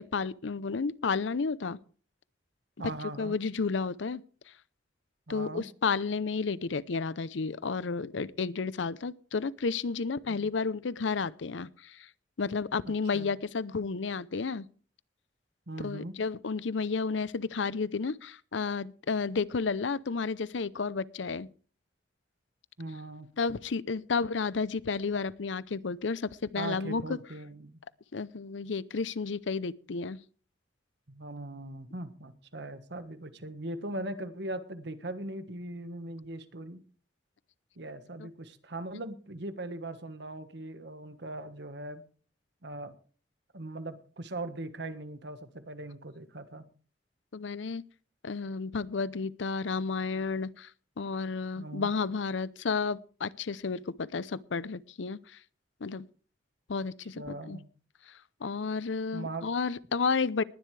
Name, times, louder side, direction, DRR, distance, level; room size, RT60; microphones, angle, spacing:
voice 1, 0.0-1.8 3.2-4.2 5.3-12.1 12.4-14.7 15.8-21.5 23.4-27.0 28.1-30.2 38.2-38.3 47.3-47.8 48.2-50.7 51.0-55.4 55.8-56.1 56.7-57.6 58.1-60.4, left 4 dB, 85° left, 0.6 m, -32 dB
voice 2, 2.8-3.4 5.3-5.6 10.3-10.5 13.1-13.4 15.7-16.1 22.8-23.3 26.5-27.8 31.1-36.8 37.8-42.0 42.6-42.9 43.5-46.7 51.6-51.9 57.1-57.7 59.1-59.5, right 2 dB, 65° right, 1.4 m, -40 dB
20.0 x 11.0 x 3.3 m
head